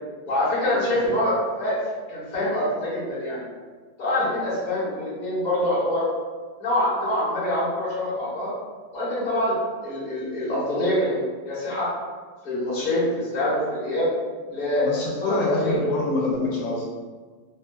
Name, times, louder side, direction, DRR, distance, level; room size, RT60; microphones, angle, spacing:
voice 1, 0.2-1.7 2.1-3.4 4.0-6.0 6.6-8.5 8.9-9.5 9.8-11.2 11.5-11.9 12.4-14.1 14.5-15.7, left 1 dB, 30° left, -10 dB, 0.9 m, -25 dB
voice 2, 14.8-16.9, left 2 dB, 80° left, -3 dB, 1.3 m, -25 dB
3.4 x 2.1 x 2.2 m, 1.4 s
omnidirectional pair, 2.0 m